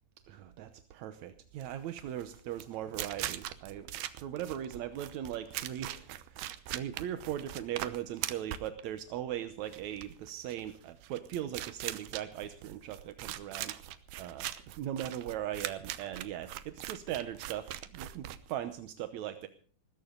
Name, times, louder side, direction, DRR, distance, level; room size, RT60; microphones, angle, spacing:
voice 1, 0.3-3.9 4.2-13.8 14.2-19.5, right 11 dB, 70° right, 10 dB, 1.8 m, -39 dB
sound 1, 1.5-18.9, right 13 dB, 90° right, 2.9 m, -41 dB
19.5 x 16.5 x 3.9 m, 0.43 s
omnidirectional pair, 4.2 m